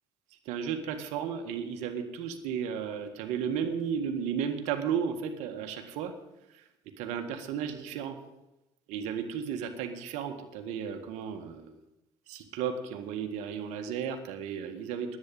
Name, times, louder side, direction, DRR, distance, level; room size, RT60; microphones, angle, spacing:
voice 1, 0.5-6.1 7.0-8.2 8.9-11.7 12.3-15.2, right 7 dB, 75° right, 5 dB, 1.8 m, -34 dB
10.5 x 9.2 x 9.2 m, 0.93 s
hypercardioid pair, 70°, 12 cm